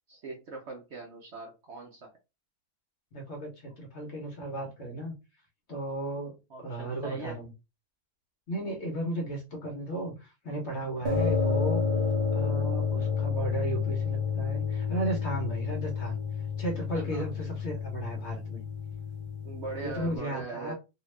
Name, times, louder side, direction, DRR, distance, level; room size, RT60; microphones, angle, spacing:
voice 1, 0.1-2.1 6.5-7.4 16.9-17.2 19.4-20.7, right 4 dB, 60° right, 0.8 m, -40 dB
voice 2, 3.1-5.1 5.7-7.5 8.5-11.8 12.3-16.2 16.6-18.6 19.8-20.7, right 1 dB, 50° left, 1.0 m, -35 dB
sound 1, 11.0-20.2, left 5 dB, 40° right, 0.4 m, -30 dB
2.8 x 2.3 x 3.1 m
omnidirectional pair, 1.6 m